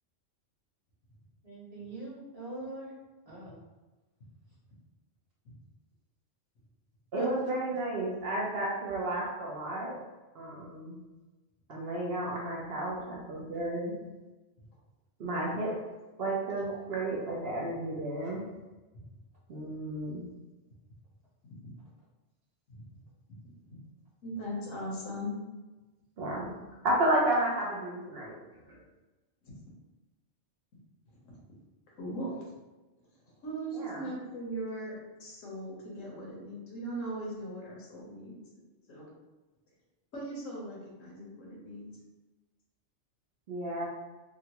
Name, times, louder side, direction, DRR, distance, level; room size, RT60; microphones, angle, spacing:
voice 1, 1.4-2.9 3.2-3.6 7.1-7.3, right 1 dB, 30° right, -9 dB, 1.2 m, -42 dB
voice 2, 7.1-10.0 10.3-10.9 11.7-14.0 15.2-15.8 16.2-18.5 19.5-20.2 26.2-26.5 26.8-28.4 28.7-28.8 33.7-34.1 43.5-43.9, right 1 dB, 60° right, -4 dB, 0.9 m, -32 dB
voice 3, 24.2-25.3 29.4-29.5 31.2-31.4 32.0-32.5 33.4-38.4 38.9-39.1 40.1-41.9, right 1 dB, 85° left, -4 dB, 1.3 m, -39 dB
3.7 x 2.2 x 2.9 m, 1.2 s
omnidirectional pair, 1.3 m